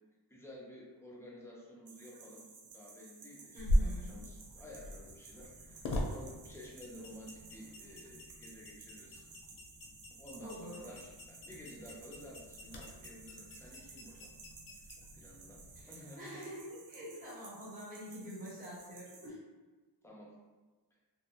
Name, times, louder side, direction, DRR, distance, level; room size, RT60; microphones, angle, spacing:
voice 1, 0.3-2.5 2.7-9.2 10.2-14.3 15.1-16.4 20.0-20.4, equal, 5° left, -5 dB, 0.4 m, -52 dB
sound 1, 1.9-19.3, right 4 dB, 65° right, 0.5 m, -56 dB
voice 2, 3.5-4.2 10.4-11.1 15.7-19.4, equal, 20° right, -9 dB, 1.0 m, -47 dB
sound 2, 3.6-15.8, equal, 80° left, 0.5 m, -40 dB
2.6 x 2.1 x 2.8 m, 1.3 s
wide cardioid pair, 180°, 45 cm